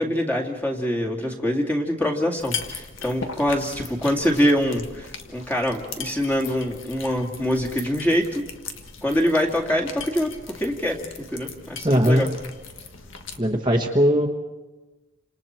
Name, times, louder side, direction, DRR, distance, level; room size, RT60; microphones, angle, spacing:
voice 1, 0.0-8.4 9.0-10.3 10.6-12.3, equal, 10° left, 0 dB, 2.3 m, -24 dB
sound 1, 2.4-13.4, left 5 dB, 70° left, 1.7 m, -38 dB
voice 2, 11.8-12.3 13.4-14.3, equal, 20° right, 1 dB, 1.3 m, -19 dB
29.5 x 27.0 x 4.5 m, 1.1 s
head